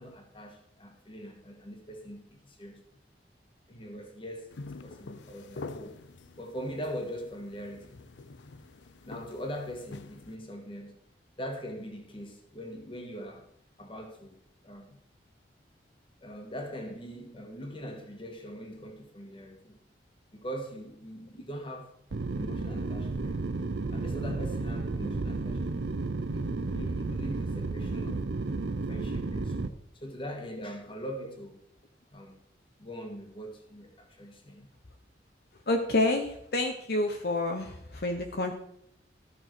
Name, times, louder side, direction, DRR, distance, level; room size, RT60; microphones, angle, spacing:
voice 1, 0.0-2.8 3.7-6.0 6.3-8.0 9.0-10.9 11.4-13.5 13.8-14.4 14.6-15.0 16.2-19.8 20.3-21.9 22.4-23.4 23.9-25.7 26.3-28.2 28.7-29.7 29.9-31.6 32.1-32.4 32.8-34.7, equal, 30° left, 1.8 m, -42 dB
sound 1, 4.5-10.4, left 3 dB, 85° left, 0.6 m, -46 dB
sound 2, 22.1-29.7, right 3 dB, 75° right, 0.6 m, -32 dB
voice 2, 35.7-38.5, left 2 dB, 60° left, 1.0 m, -28 dB
14.0 x 6.3 x 4.6 m
head